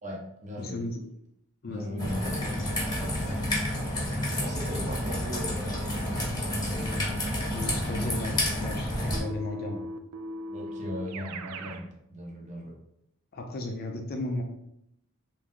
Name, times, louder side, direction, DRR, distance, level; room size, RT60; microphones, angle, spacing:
voice 1, 0.0-0.8 1.7-2.4 2.8-3.6 4.1-6.0 6.4-7.1 10.5-12.8, equal, 35° right, 0 dB, 0.7 m, -39 dB
voice 2, 0.6-1.0 1.6-2.5 2.9-3.2 7.4-9.9 13.3-14.4, left 1 dB, 45° left, 3 dB, 0.5 m, -35 dB
Raindrop / Trickle dribble, 2.0-9.2, left 1 dB, 20° left, 1.0 m, -30 dB
Keyboard (musical), 9.1-11.9, right 1 dB, 90° right, 0.3 m, -38 dB
3.1 x 2.7 x 3.7 m, 0.77 s
head